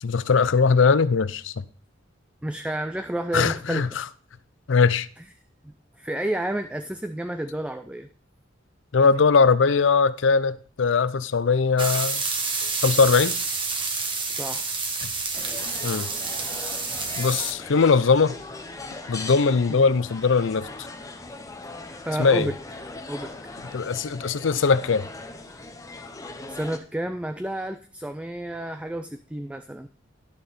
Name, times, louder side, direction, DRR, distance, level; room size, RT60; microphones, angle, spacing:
voice 1, 0.0-1.5 3.3-4.0 4.7-5.1 8.9-12.2 12.8-13.4 15.0-15.1 15.8-16.1 17.2-18.4 19.1-20.7 22.2-22.5 23.7-25.1, left 5 dB, 65° left, 0.5 m, -20 dB
voice 2, 2.4-3.9 5.6-8.1 14.3-14.8 22.1-22.6 23.1-23.4 26.5-29.9, right 1 dB, 5° right, 0.4 m, -30 dB
sound 1, 11.8-17.5, right 4 dB, 25° right, 1.3 m, -28 dB
sound 2, 15.3-26.8, left 2 dB, 15° left, 0.9 m, -39 dB
11.0 x 6.6 x 4.2 m
head